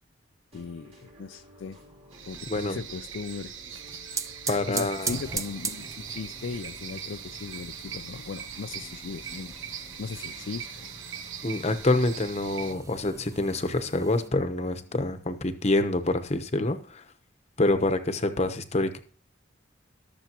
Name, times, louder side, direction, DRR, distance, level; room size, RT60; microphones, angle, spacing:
voice 1, 0.5-1.8 2.2-3.5 4.5-9.5 10.0-10.9, left 5 dB, 75° left, 0.4 m, -38 dB
sound 1, 0.5-15.6, equal, 30° right, 2.7 m, -53 dB
sound 2, 2.1-12.7, right 7 dB, 85° right, 1.3 m, -41 dB
voice 2, 2.5-2.8 4.5-5.1 11.4-17.1 17.6-19.0, left 2 dB, 35° left, 0.9 m, -26 dB
sound 3, 3.7-14.3, right 5 dB, 15° right, 0.4 m, -40 dB
20.5 x 7.0 x 3.0 m
head